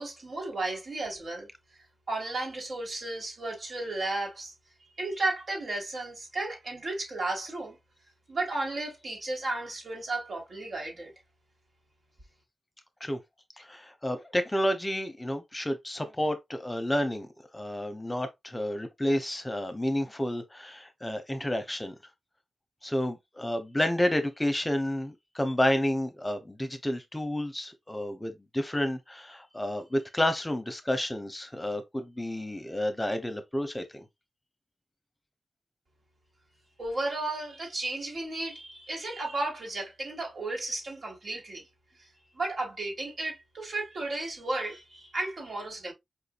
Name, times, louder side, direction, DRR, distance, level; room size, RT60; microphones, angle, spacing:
voice 1, 0.0-1.5 2.1-4.5 5.0-7.8 8.3-11.1 36.8-41.6 42.3-45.9, right 2 dB, 65° right, 1.9 m, -34 dB
voice 2, 13.6-17.3 17.5-21.9 22.8-34.1, left 1 dB, 15° left, 0.8 m, -30 dB
4.7 x 2.6 x 2.4 m
cardioid pair, 55°, 0 cm